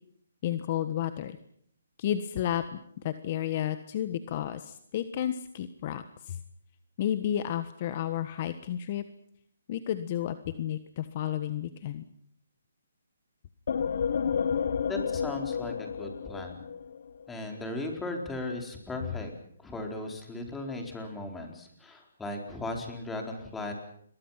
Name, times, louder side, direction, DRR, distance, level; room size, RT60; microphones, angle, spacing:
voice 1, 0.4-1.4 2.0-6.4 7.0-9.0 9.7-12.0, left 11 dB, 40° left, 11 dB, 1.4 m, -32 dB
sound 1, 13.7-17.3, left 7 dB, 60° left, 1.3 m, -31 dB
voice 2, 14.9-16.6 17.3-19.3 19.6-23.7, left 2 dB, 5° left, 2 dB, 4.4 m, -37 dB
29.0 x 23.0 x 5.9 m, 0.68 s
hypercardioid pair, 155°, 0 cm